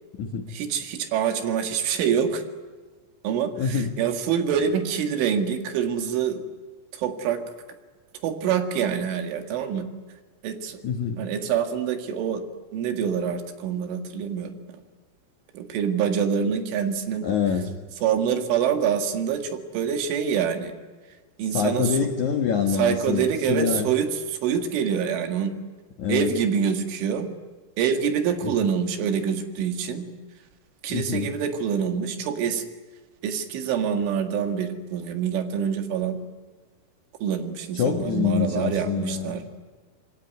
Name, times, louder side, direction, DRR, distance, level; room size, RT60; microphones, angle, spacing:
voice 1, 0.5-2.4 3.2-6.4 6.9-7.4 8.2-9.9 10.4-10.8 11.2-12.4 12.7-14.5 15.5-17.3 18.0-20.7 21.4-22.0 22.7-25.5 26.1-27.3 27.8-30.1 30.8-32.6 33.2-36.2 37.2-39.4, right 7 dB, 70° right, 6 dB, 4.2 m, -26 dB
voice 2, 3.6-3.9 10.8-11.2 17.2-17.7 21.5-23.9 26.0-26.3 28.4-28.5 30.9-31.3 37.7-39.3, left 7 dB, 85° left, 5 dB, 1.6 m, -25 dB
27.0 x 22.5 x 9.4 m, 1.4 s
omnidirectional pair, 6.0 m